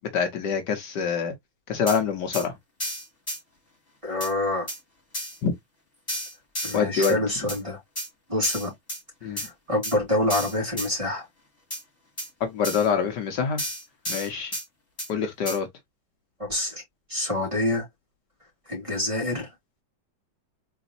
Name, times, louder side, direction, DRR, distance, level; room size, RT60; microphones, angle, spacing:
voice 1, 0.1-1.3 1.7-2.5 5.4-5.5 6.7-7.2 9.2-9.4 12.4-13.6 14.1-14.5 15.1-15.7, left 6 dB, 70° left, 1.6 m, -25 dB
sound 1, 1.9-2.0 2.3-2.5 2.8-3.4 4.2-4.3 4.7-4.8 5.1-5.4 6.1-7.1 7.5-7.6 8.0-8.1 8.4-9.0 9.4-9.5 9.8-10.0 10.3-10.9 11.7-11.8 12.2-12.3 12.6-12.9 13.6-14.6 15.0-15.1 15.5-15.6, equal, 20° left, 2.9 m, -32 dB
voice 2, 4.0-4.7 6.6-7.8 8.3-8.7 9.4-11.2 16.4-16.8 17.1-17.9 18.7-19.5, left 1 dB, 15° right, 2.3 m, -26 dB
4.0 x 4.0 x 2.6 m
omnidirectional pair, 2.0 m